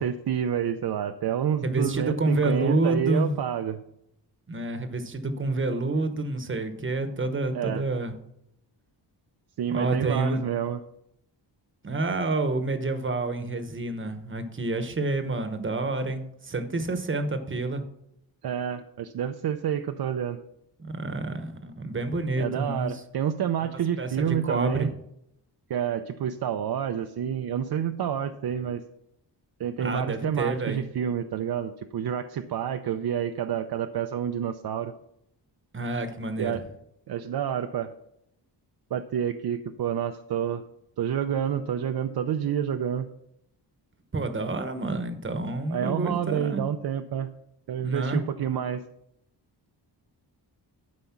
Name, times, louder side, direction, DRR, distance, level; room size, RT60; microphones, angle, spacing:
voice 1, 0.0-3.8 7.5-7.8 9.6-10.8 18.4-20.4 22.4-24.9 25.7-28.8 29.6-34.9 36.4-36.6 37.1-37.9 38.9-40.6 41.0-43.1 45.7-47.3 47.7-48.8, right 9 dB, 60° right, 7 dB, 0.6 m, -28 dB
voice 2, 1.6-3.4 4.5-8.1 9.7-10.4 11.8-17.8 20.8-23.0 24.0-24.9 29.8-30.8 35.7-36.6 44.1-46.6 47.8-48.2, right 2 dB, 30° right, 8 dB, 1.0 m, -28 dB
12.0 x 5.2 x 5.8 m, 0.78 s
wide cardioid pair, 155°, 42 cm